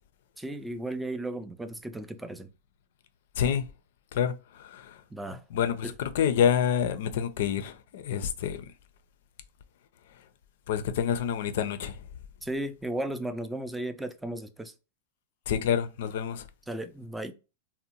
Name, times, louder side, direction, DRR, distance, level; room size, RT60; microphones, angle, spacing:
voice 1, 0.4-2.5 5.1-5.4 5.8-5.9 12.4-14.7 16.7-17.3, right 1 dB, 5° right, 0.3 m, -35 dB
voice 2, 4.1-5.0 5.3-8.7 10.7-12.0 15.5-16.5, left 8 dB, 65° left, 0.4 m, -28 dB
2.7 x 2.0 x 2.8 m
hypercardioid pair, 115°, 0 cm